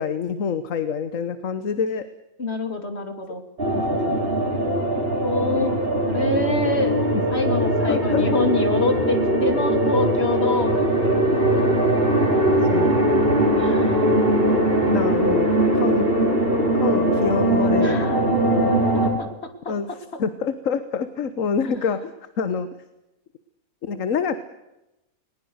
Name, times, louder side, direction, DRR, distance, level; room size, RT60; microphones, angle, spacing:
voice 1, 0.0-2.1 3.7-4.2 7.9-8.3 12.6-13.1 14.9-16.1 16.7-18.0 19.7-19.9 20.2-22.7 23.8-24.4, left 6 dB, 65° left, 12 dB, 1.5 m, -26 dB
voice 2, 2.4-3.4 5.2-5.8 6.0-7.0 7.3-11.2 11.5-11.6 13.6-14.0 17.8-18.2 19.2-19.3 19.6-19.7, left 2 dB, 45° left, 7 dB, 3.1 m, -26 dB
sound 1, 3.6-19.1, right 1 dB, 40° right, 5.3 m, -20 dB
21.0 x 20.0 x 8.0 m, 0.95 s
omnidirectional pair, 1.5 m